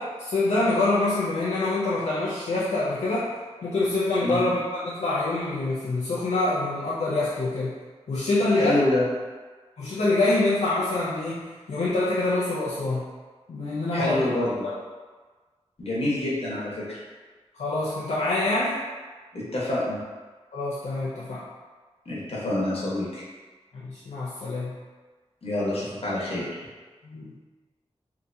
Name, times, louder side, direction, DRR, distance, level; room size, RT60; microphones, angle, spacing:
voice 1, 0.0-3.3 3.6-7.8 8.1-8.8 9.8-13.1 13.5-14.3 17.5-18.8 20.5-21.5 23.7-24.7 27.0-27.4, left 2 dB, 80° left, -8 dB, 0.5 m, -25 dB
voice 2, 8.5-9.0 13.9-14.7 15.8-17.0 19.3-20.0 22.0-23.2 25.4-26.5, left 1 dB, 60° left, -7 dB, 1.1 m, -27 dB
3.4 x 2.8 x 2.6 m, 1.4 s
wide cardioid pair, 90°, 11 cm